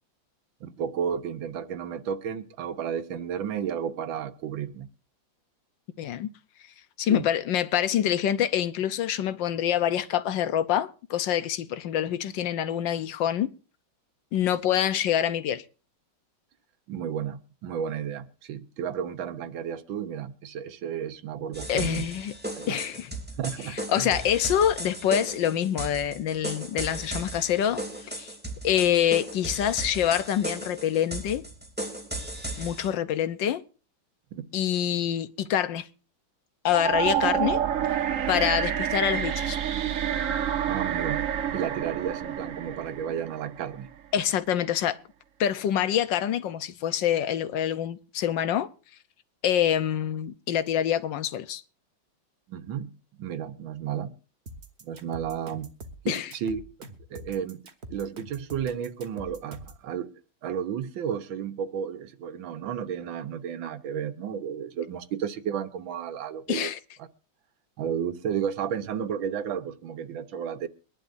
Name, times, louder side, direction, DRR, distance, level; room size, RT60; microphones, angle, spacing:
voice 1, 0.6-4.9 7.1-7.3 16.9-22.1 22.6-22.8 23.4-24.2 34.3-34.4 40.7-43.9 52.5-52.9 53.2-54.1 54.8-55.7 56.0-56.6 57.1-57.6 57.9-66.7 67.0-67.1 67.8-70.7, right 8 dB, 80° right, 1.7 m, -32 dB
voice 2, 6.0-6.3 7.0-13.5 14.3-15.6 21.7-22.3 22.7-23.1 23.7-28.3 28.6-31.5 32.6-33.6 34.5-35.9 36.6-37.6 37.9-38.0 38.3-39.6 44.1-45.0 45.4-48.7 49.4-51.6 56.1-56.3 66.5-66.8, left 10 dB, 70° left, 1.4 m, -26 dB
sound 1, 21.5-32.9, right 1 dB, 5° right, 2.7 m, -36 dB
sound 2, 36.7-43.8, right 9 dB, 50° right, 1.1 m, -28 dB
sound 3, 54.5-59.8, right 1 dB, 35° right, 1.5 m, -44 dB
23.5 x 11.0 x 2.6 m
omnidirectional pair, 2.1 m